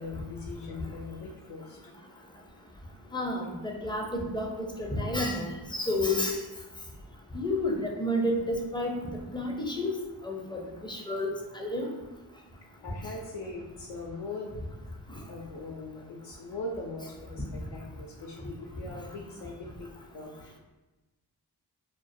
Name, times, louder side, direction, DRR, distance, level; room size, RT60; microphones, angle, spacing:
voice 1, 0.0-1.8 12.8-14.5 15.3-20.6, left 3 dB, 70° left, -2 dB, 0.5 m, -40 dB
voice 2, 3.1-4.5 4.8-6.4 7.3-8.9 9.3-10.0 10.2-10.6 10.9-11.3 11.5-11.9, left 1 dB, 10° left, 0 dB, 0.5 m, -30 dB
2.2 x 2.2 x 2.5 m, 1.1 s
cardioid pair, 45°, 42 cm